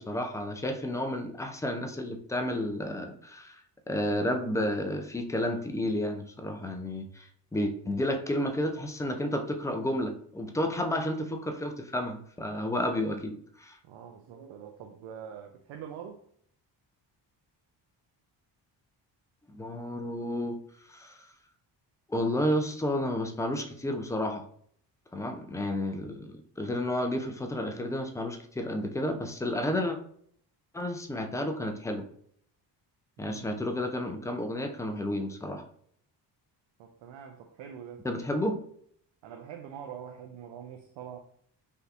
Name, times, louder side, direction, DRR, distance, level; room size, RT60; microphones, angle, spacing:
voice 1, 0.0-3.6 3.9-13.8 19.5-20.6 20.9-21.3 22.1-24.4 25.1-30.0 30.7-32.0 33.2-35.6 38.0-38.6, left 1 dB, 10° left, 0.3 m, -31 dB
voice 2, 13.8-16.2 33.2-33.5 36.8-38.4 39.2-41.2, right 8 dB, 85° right, 0.5 m, -44 dB
3.4 x 2.7 x 2.4 m
cardioid pair, 95°, 44 cm